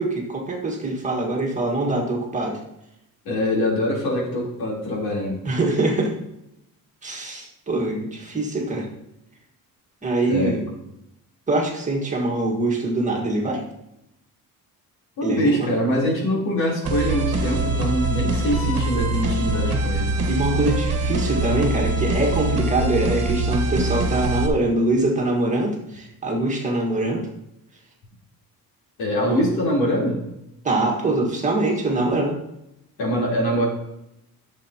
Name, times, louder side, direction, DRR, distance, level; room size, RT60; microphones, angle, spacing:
voice 1, 0.0-2.6 5.4-6.1 7.0-8.9 10.0-10.7 11.5-13.6 15.2-15.7 20.3-27.3 29.3-29.4 30.6-32.4, right 2 dB, 20° right, -1 dB, 1.7 m, -23 dB
voice 2, 3.3-5.4 10.3-10.6 15.2-20.1 29.0-30.2 33.0-33.6, equal, 80° left, -3 dB, 3.6 m, -23 dB
sound 1, 16.8-24.5, right 2 dB, 40° right, 1.4 m, -23 dB
13.5 x 7.1 x 2.9 m, 0.85 s
cardioid pair, 175°, 36 cm